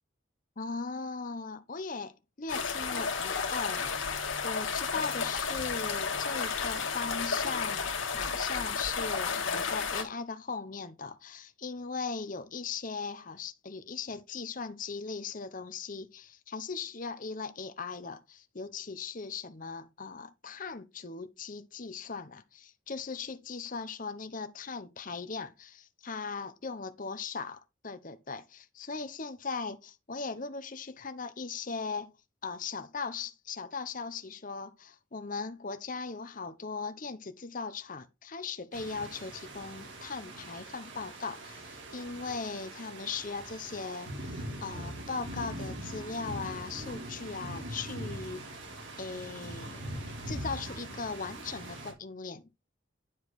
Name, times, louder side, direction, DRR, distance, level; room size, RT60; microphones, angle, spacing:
voice 1, 0.6-32.1 32.4-48.4 49.0-52.4, left 4 dB, 40° left, 0.8 m, -39 dB
sound 1, 2.5-10.0, left 5 dB, 70° left, 1.7 m, -32 dB
sound 2, 38.7-51.9, right 1 dB, 65° right, 4.0 m, -42 dB
10.0 x 4.6 x 4.7 m
head